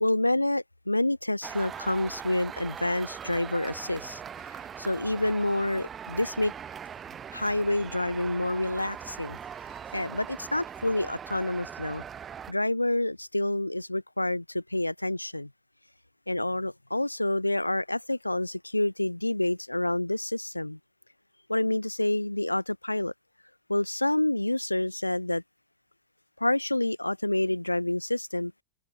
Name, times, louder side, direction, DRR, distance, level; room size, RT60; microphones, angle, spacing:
voice 1, 0.0-4.2 4.8-6.5 7.3-9.4 9.9-12.0 12.5-15.5 16.3-20.8 21.5-23.1 23.7-25.4 26.4-28.5, left 1 dB, 85° left, 0.6 m, -28 dB
sound 1, 1.4-12.5, right 8 dB, 25° right, 2.4 m, -41 dB
figure-of-eight pair, 90°, 0 cm